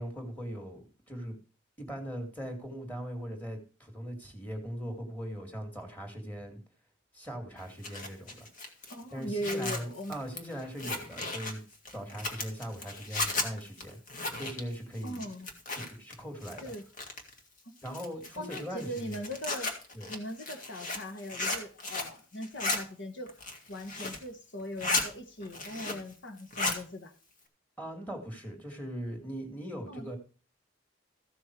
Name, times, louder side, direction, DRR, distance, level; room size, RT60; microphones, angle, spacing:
voice 1, 0.0-1.4 1.8-6.6 7.1-8.5 9.1-11.6 11.9-15.2 15.7-16.7 17.8-19.2 19.9-20.1 27.8-30.2, equal, 10° left, 2.4 m, -40 dB
Zipper (clothing), 7.6-16.1 16.4-17.4 17.9-22.2 22.4-22.8 23.3-24.3 24.6-25.1 25.4-26.1 26.4-26.8, left 2 dB, 40° left, 2.0 m, -35 dB
voice 2, 8.9-10.1 15.0-15.5 16.6-16.8 17.6-18.0 18.4-19.7 20.1-23.3 23.7-27.1 29.9-30.2, equal, 65° left, 1.6 m, -39 dB
14.5 x 6.4 x 4.7 m
head